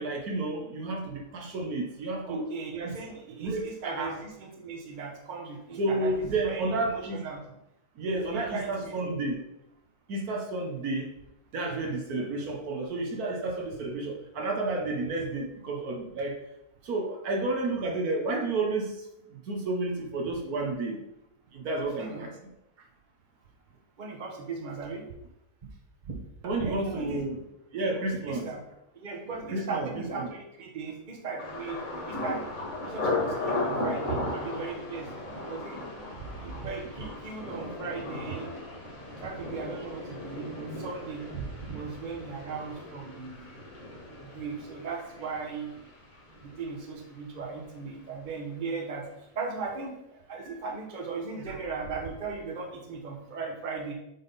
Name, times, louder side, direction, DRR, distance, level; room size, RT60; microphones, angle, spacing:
voice 1, 0.0-2.5 2.8-2.9 3.4-4.2 5.8-7.2 8.0-9.4 10.1-11.1 11.5-16.4 16.8-21.0 21.5-22.3 26.4-27.4 27.7-28.5 29.5-29.9 30.2-30.3 34.1-34.2 35.3-35.4 51.5-51.6, right 2 dB, 65° right, 2 dB, 1.4 m, -31 dB
voice 2, 2.2-7.4 8.3-9.1 22.0-22.3 24.0-25.0 26.0-26.1 26.6-27.2 28.3-28.6 28.9-32.5 32.8-35.8 36.4-38.5 39.2-43.5 44.2-45.8 46.4-49.0 49.3-53.9, right 4 dB, 35° right, 0 dB, 1.1 m, -37 dB
Thunder, 31.4-47.1 47.4-48.0 48.4-48.7, left 2 dB, 55° left, 2.1 m, -36 dB
8.0 x 3.6 x 4.0 m, 0.85 s
omnidirectional pair, 1.7 m